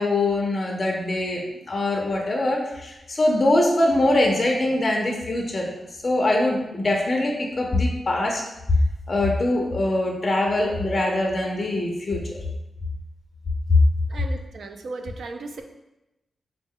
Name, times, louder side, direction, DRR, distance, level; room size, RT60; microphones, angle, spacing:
voice 1, 0.0-1.4 1.7-5.7 6.0-8.4 9.1-12.4, left 1 dB, 30° left, 0 dB, 0.5 m, -23 dB
voice 2, 14.1-15.6, right 3 dB, 65° right, 5 dB, 0.4 m, -36 dB
3.9 x 2.1 x 3.5 m, 0.94 s
wide cardioid pair, 140°, 0 cm